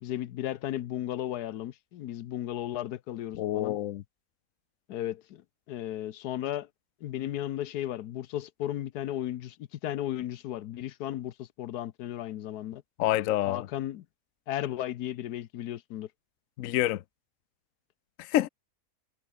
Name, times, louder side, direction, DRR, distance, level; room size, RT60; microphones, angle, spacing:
voice 1, 0.0-3.8 4.9-5.4 5.7-6.7 7.0-12.8 13.4-14.0 14.5-16.1, left 12 dB, 85° left, 1.3 m, -35 dB
voice 2, 3.4-4.0 13.0-13.7 16.6-17.0 18.2-18.5, left 14 dB, 65° left, 1.0 m, -27 dB
omnidirectional pair, 1.6 m